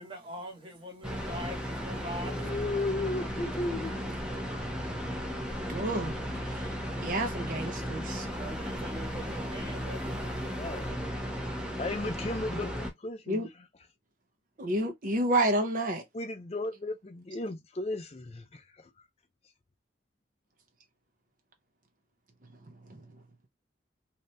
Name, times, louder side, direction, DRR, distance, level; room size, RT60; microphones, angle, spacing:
voice 1, 0.0-2.5 8.2-10.9, equal, 25° right, 1.2 m, -43 dB
sound 1, 1.0-12.9, equal, 5° right, 0.6 m, -35 dB
voice 2, 2.2-4.1 4.7-5.0 10.6-11.0 11.8-13.5 16.1-18.9, left 2 dB, 35° left, 0.5 m, -35 dB
voice 3, 5.7-6.2 6.5-8.3 13.3-13.5 14.6-16.0 22.9-23.0, right 1 dB, 45° right, 0.6 m, -30 dB
2.8 x 2.6 x 3.2 m
head